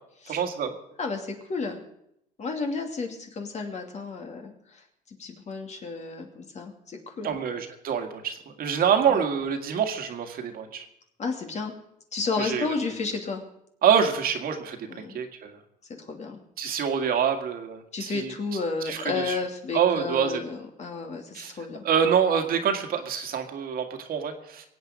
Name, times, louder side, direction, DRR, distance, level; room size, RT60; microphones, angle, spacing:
voice 1, 0.3-0.7 7.2-10.9 12.4-12.7 13.8-15.5 16.6-18.3 18.8-19.4 19.7-20.4 21.3-21.5 21.8-24.7, right 7 dB, 60° right, 5 dB, 1.9 m, -26 dB
voice 2, 1.0-1.8 2.4-7.4 9.1-9.2 11.2-11.7 12.1-13.4 14.9-15.2 16.1-16.4 17.9-21.9, left 4 dB, 40° left, 4 dB, 2.7 m, -32 dB
22.5 x 8.7 x 5.2 m, 0.77 s
cardioid pair, 110°, 17 cm